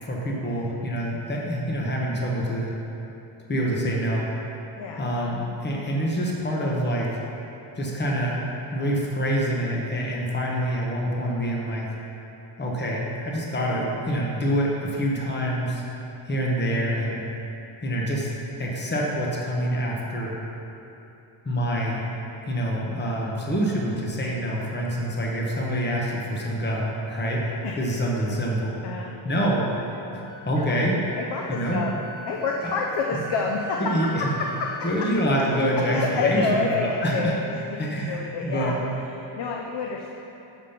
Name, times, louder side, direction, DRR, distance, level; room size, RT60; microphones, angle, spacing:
voice 1, 0.0-2.7 3.5-4.3 5.0-7.1 7.7-8.4 8.7-11.9 12.6-15.8 16.2-17.2 17.8-18.3 18.6-20.3 21.4-22.0 22.5-28.7 29.2-29.7 30.1-31.0 31.5-31.8 33.1-33.2 33.8-34.3 34.8-37.3 37.8-38.8, equal, 20° left, -3 dB, 1.1 m, -26 dB
Wind instrument woodwind instrument, 29.9-37.6, equal, 20° right, 0.4 m, -41 dB
voice 2, 31.1-32.0 32.3-33.8 34.2-34.7 35.9-38.8 39.2-40.1, left 4 dB, 55° left, 0 dB, 0.7 m, -28 dB
7.4 x 5.1 x 5.7 m, 2.9 s
cardioid pair, 135°, 48 cm